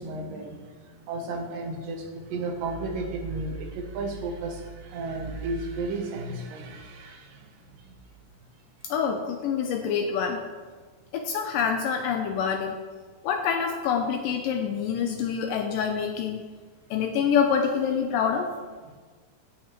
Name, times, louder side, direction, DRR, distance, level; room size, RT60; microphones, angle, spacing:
voice 1, 0.0-7.5, right 3 dB, 75° right, 3 dB, 2.3 m, -33 dB
voice 2, 8.8-10.4 11.1-12.8 13.2-16.4 16.9-18.5, left 7 dB, 80° left, 5 dB, 2.0 m, -26 dB
17.0 x 5.9 x 3.0 m, 1.5 s
omnidirectional pair, 4.3 m